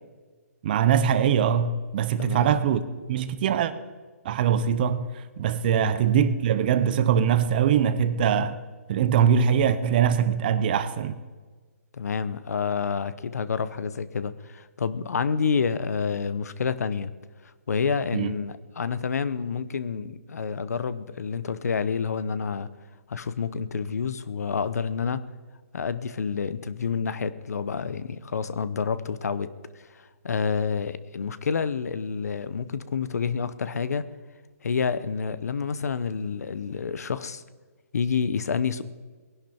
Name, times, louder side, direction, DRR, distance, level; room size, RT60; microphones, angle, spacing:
voice 1, 0.6-2.8 3.1-3.7 4.2-8.5 8.9-11.2 18.1-18.3, right 8 dB, 35° right, 0.8 m, -22 dB
voice 2, 2.2-2.5 5.8-6.0 11.9-17.1 17.7-22.7 23.1-25.2 25.7-29.5 29.8-34.1 34.6-37.4 37.9-38.8, left 6 dB, 70° left, 0.9 m, -28 dB
19.0 x 11.0 x 4.4 m
hypercardioid pair, 155°, 9 cm